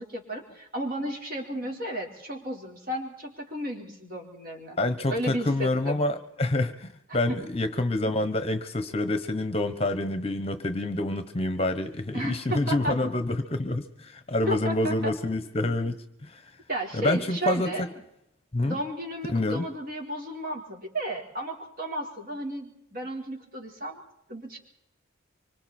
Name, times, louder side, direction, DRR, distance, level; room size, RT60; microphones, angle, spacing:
voice 1, 0.0-4.8 5.1-6.0 7.1-7.4 12.1-13.0 14.5-15.1 16.7-17.9 18.6-24.0 24.3-24.6, right 1 dB, 45° right, 4.5 m, -33 dB
voice 2, 4.8-16.4 16.9-17.9 18.5-18.8 19.3-19.6, left 2 dB, 30° left, 1.1 m, -27 dB
25.0 x 24.5 x 4.4 m
head